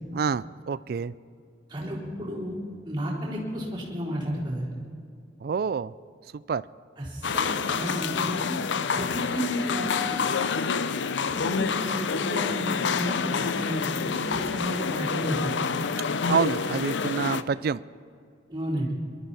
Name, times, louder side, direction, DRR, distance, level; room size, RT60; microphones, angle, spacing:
voice 1, 0.1-1.1 5.4-5.9 6.3-6.6 16.3-17.8, right 6 dB, 55° right, 18 dB, 0.3 m, -27 dB
voice 2, 1.7-2.6 2.8-4.7 7.0-8.6 8.9-10.1 11.3-15.6 18.5-18.9, equal, 25° right, -7 dB, 4.1 m, -32 dB
sound 1, 7.2-17.4, left 5 dB, 80° left, 0.6 m, -28 dB
23.0 x 12.5 x 4.2 m, 2.3 s
head